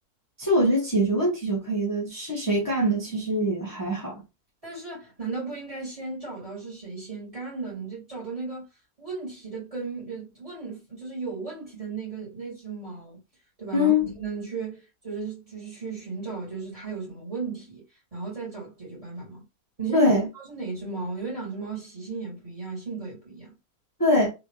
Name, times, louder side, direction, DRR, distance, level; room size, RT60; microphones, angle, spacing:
voice 1, 0.4-4.2 13.7-14.1 19.9-20.3 24.0-24.3, left 1 dB, 15° left, 1.0 m, -23 dB
voice 2, 4.6-8.7 9.0-13.2 13.6-17.8 18.1-19.4 19.8-23.5, right 4 dB, 20° right, 2.3 m, -35 dB
3.5 x 3.0 x 3.1 m
omnidirectional pair, 1.6 m